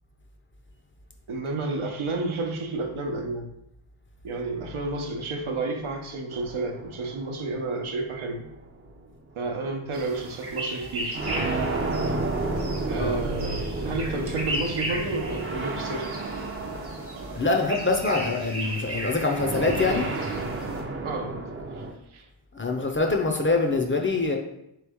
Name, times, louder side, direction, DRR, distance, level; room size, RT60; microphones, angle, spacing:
voice 1, 1.3-3.5 4.2-8.4 9.4-11.2 12.9-16.2 21.0-21.4 21.7-21.8 22.1-22.3, right 3 dB, 75° right, 3 dB, 0.8 m, -31 dB
sound 1, 6.3-9.0 9.9-10.0 11.1-18.5 19.4-21.9, right 2 dB, 25° right, 0.5 m, -32 dB
sound 2, 9.9-20.8, right 1 dB, 50° right, 1.1 m, -36 dB
voice 2, 17.3-20.1 22.5-24.4, left 3 dB, 25° left, 2 dB, 0.5 m, -24 dB
3.7 x 3.0 x 3.5 m, 0.80 s
wide cardioid pair, 70°, 50 cm